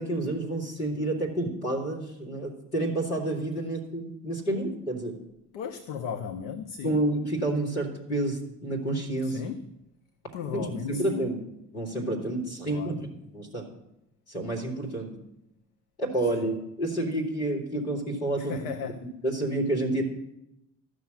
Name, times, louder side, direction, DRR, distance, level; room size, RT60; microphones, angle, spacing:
voice 1, 0.0-5.2 6.8-9.5 10.5-11.4 11.7-13.0 13.3-13.7 14.3-15.2 16.0-18.5 19.2-20.0, right 1 dB, 85° left, -3 dB, 2.5 m, -29 dB
voice 2, 5.5-7.0 9.2-9.6 10.3-11.3 12.7-13.1 16.3-16.6 18.3-19.1, left 7 dB, 70° left, 9 dB, 0.8 m, -36 dB
13.0 x 6.3 x 8.8 m, 0.85 s
figure-of-eight pair, 45°, 43 cm